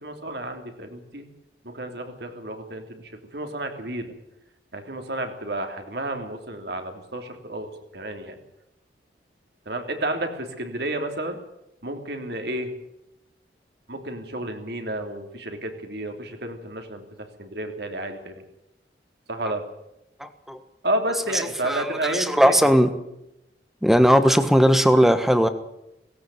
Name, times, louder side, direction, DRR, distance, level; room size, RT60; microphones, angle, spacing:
voice 1, 0.0-1.3 1.6-3.0 3.3-4.1 4.7-8.3 9.7-11.4 11.8-12.7 13.9-17.0 17.4-18.4 19.3-19.6 20.8-22.5, right 1 dB, 65° right, 5 dB, 3.2 m, -31 dB
voice 2, 20.2-20.6 21.6-23.0 23.8-25.5, equal, ahead, 10 dB, 1.2 m, -18 dB
17.5 x 17.0 x 9.2 m, 0.86 s
head